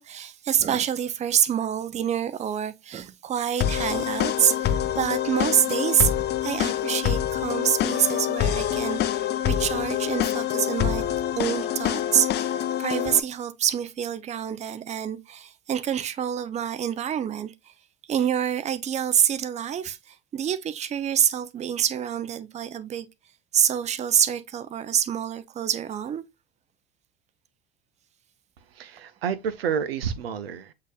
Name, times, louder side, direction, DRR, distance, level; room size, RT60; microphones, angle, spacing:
voice 1, 0.0-6.1 6.4-11.0 11.3-12.5 12.8-17.5 18.1-23.1 23.5-26.2, right 9 dB, 25° right, 0.5 m, -26 dB
sound 1, 3.6-13.2, left 11 dB, 35° left, 0.5 m, -26 dB
voice 2, 28.6-30.7, right 7 dB, 85° right, 0.6 m, -30 dB
8.0 x 2.8 x 2.3 m
hypercardioid pair, 80°, 29 cm